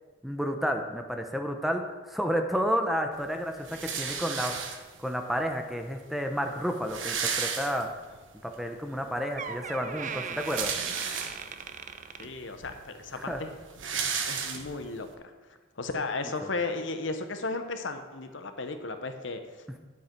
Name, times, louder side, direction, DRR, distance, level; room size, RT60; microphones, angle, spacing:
voice 1, 0.2-4.6 5.0-7.9 8.4-10.7 13.1-13.4, equal, ahead, 5 dB, 0.6 m, -31 dB
sound 1, 3.6-5.1 5.9-6.0 6.2-6.3 6.6-8.2 8.6-8.7 10.1-11.7 12.3-12.4 12.7-15.0, right 6 dB, 75° right, 1.2 m, -33 dB
Door, 8.9-9.0 9.4-12.9 13.2-13.5 14.2-14.3, right 6 dB, 40° right, 0.5 m, -39 dB
voice 2, 12.2-13.5 13.9-15.3 15.8-19.8, left 3 dB, 70° left, 7 dB, 0.9 m, -35 dB
9.9 x 8.3 x 4.5 m, 1.3 s
head